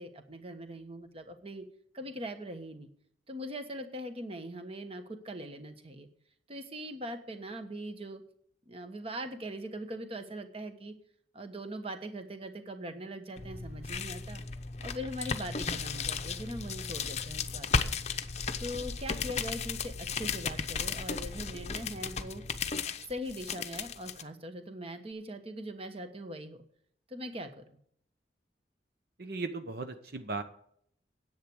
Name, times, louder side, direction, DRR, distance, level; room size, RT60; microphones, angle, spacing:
voice 1, 0.0-1.6 1.9-2.9 3.3-6.1 6.5-8.2 8.7-10.9 11.3-14.4 14.8-17.9 18.6-22.4 23.1-26.6 27.1-27.8, equal, 30° right, 7 dB, 1.3 m, -41 dB
sound 1, 13.4-24.2, left 5 dB, 40° left, 0.7 m, -35 dB
voice 2, 29.2-30.4, right 3 dB, 60° right, 8 dB, 0.9 m, -37 dB
10.5 x 8.4 x 6.3 m, 0.65 s
head